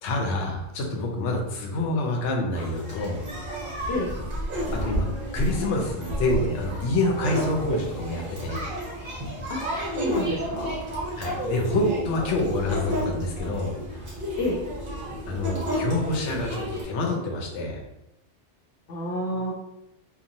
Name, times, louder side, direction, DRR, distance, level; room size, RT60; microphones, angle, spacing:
voice 1, 0.0-3.2 4.7-5.1 5.3-8.6 11.2-13.7 15.3-17.8, left 2 dB, 85° left, 1 dB, 0.9 m, -27 dB
sound 1, 2.5-16.8, equal, 50° right, 1.0 m, -31 dB
voice 2, 9.9-10.8 14.4-14.6 18.9-19.5, left 1 dB, 70° left, -3 dB, 0.8 m, -29 dB
2.9 x 2.3 x 2.6 m, 0.87 s
omnidirectional pair, 1.2 m